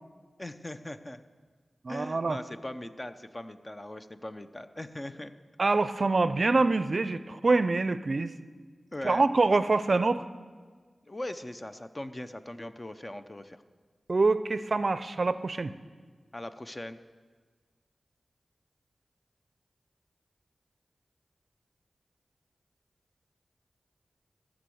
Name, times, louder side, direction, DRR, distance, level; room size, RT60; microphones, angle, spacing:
voice 1, 0.4-1.2 1.9-5.3 8.9-9.2 11.1-13.6 16.3-17.0, left 1 dB, 30° left, 10 dB, 0.6 m, -40 dB
voice 2, 1.8-2.4 5.6-8.3 9.0-10.2 14.1-15.7, right 3 dB, 55° right, 13 dB, 0.5 m, -25 dB
15.0 x 6.2 x 7.8 m, 1.5 s
cardioid pair, 50°, 0 cm